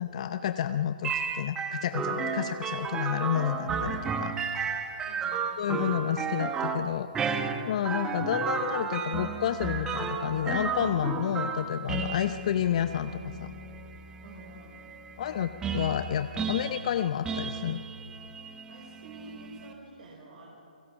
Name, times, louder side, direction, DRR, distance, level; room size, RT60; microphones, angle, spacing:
voice 1, 0.0-4.7 5.6-13.5 15.2-17.8, left 10 dB, 45° left, 10 dB, 0.7 m, -30 dB
sound 1, 1.0-19.7, right 5 dB, 10° right, 1.1 m, -33 dB
voice 2, 5.1-5.4 14.2-14.9 18.7-20.5, right 2 dB, 60° right, -3 dB, 4.9 m, -49 dB
29.0 x 18.0 x 6.0 m, 2.8 s
figure-of-eight pair, 140°, 5 cm